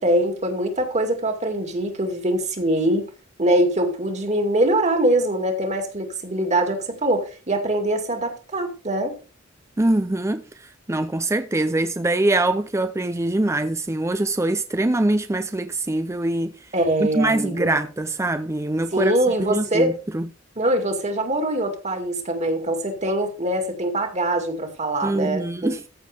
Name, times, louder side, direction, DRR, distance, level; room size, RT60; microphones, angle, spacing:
voice 1, 0.0-3.1 3.4-9.1 16.7-17.7 18.9-20.0 20.6-25.7, right 1 dB, 35° right, 2.2 m, -23 dB
voice 2, 9.8-10.4 10.9-16.5 17.1-19.1 19.5-20.3 25.0-25.8, right 2 dB, 15° right, 0.5 m, -23 dB
14.5 x 6.5 x 3.4 m
head